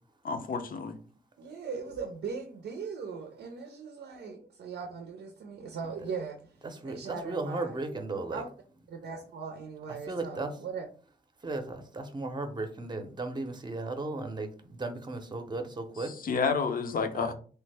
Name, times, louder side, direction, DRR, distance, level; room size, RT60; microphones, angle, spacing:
voice 1, 0.2-1.0 16.2-17.3, left 5 dB, 55° left, 0.6 m, -29 dB
voice 2, 1.4-6.4 6.8-7.7 8.3-8.5 8.9-10.9, right 5 dB, 80° right, 0.5 m, -39 dB
voice 3, 6.6-8.4 10.1-10.6 11.4-16.1 17.1-17.3, right 2 dB, 25° right, 0.6 m, -35 dB
3.2 x 2.1 x 3.3 m
cardioid pair, 75°, 17 cm